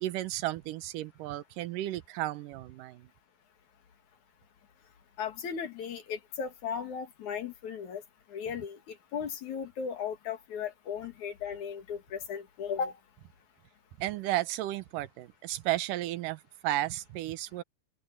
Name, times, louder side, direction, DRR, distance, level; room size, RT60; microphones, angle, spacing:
voice 1, 0.0-3.1 14.0-17.6, right 15 dB, 90° right, 2.5 m, -33 dB
voice 2, 5.2-8.0 8.3-13.0, left 7 dB, 65° left, 3.3 m, -36 dB
omnidirectional pair, 3.7 m